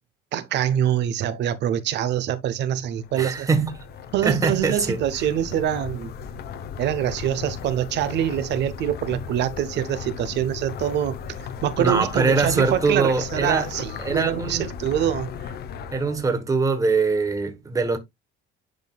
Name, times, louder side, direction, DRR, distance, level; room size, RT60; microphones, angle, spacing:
voice 1, 0.3-3.5 4.1-6.1 6.8-11.1 11.6-15.5, right 10 dB, 55° right, 0.8 m, -25 dB
sound 1, 2.9-16.4, left 7 dB, 50° left, 0.8 m, -36 dB
voice 2, 3.2-3.8 4.2-5.0 11.8-13.7 14.0-14.6 15.9-18.0, right 4 dB, 15° right, 1.1 m, -23 dB
11.0 x 3.8 x 2.3 m
cardioid pair, 155°, 21 cm